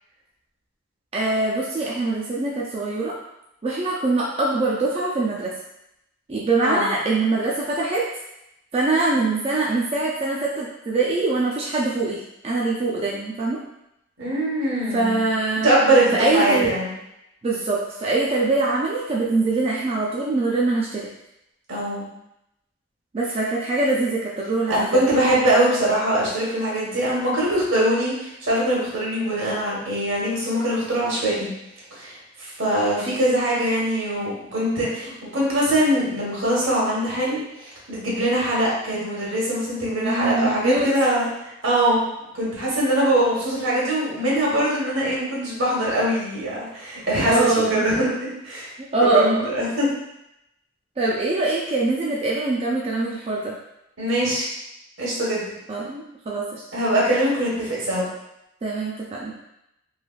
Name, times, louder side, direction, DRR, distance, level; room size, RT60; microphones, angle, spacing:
voice 1, 1.1-3.1 3.6-5.5 6.3-8.1 8.7-12.2 12.4-13.6 14.9-15.7 16.1-16.7 17.4-21.0 23.1-25.1 40.0-40.9 47.3-47.9 48.9-49.5 51.0-53.5 55.7-56.6 58.6-59.3, right 3 dB, 30° right, -5 dB, 0.4 m, -23 dB
voice 2, 14.2-15.2 15.6-16.9 21.7-22.1 24.7-31.5 31.9-41.3 41.6-42.0 42.3-48.7 49.1-49.9 54.0-54.5 55.0-55.5 56.7-58.0, right 1 dB, 75° right, -5 dB, 1.2 m, -22 dB
3.2 x 2.9 x 2.3 m, 0.85 s
head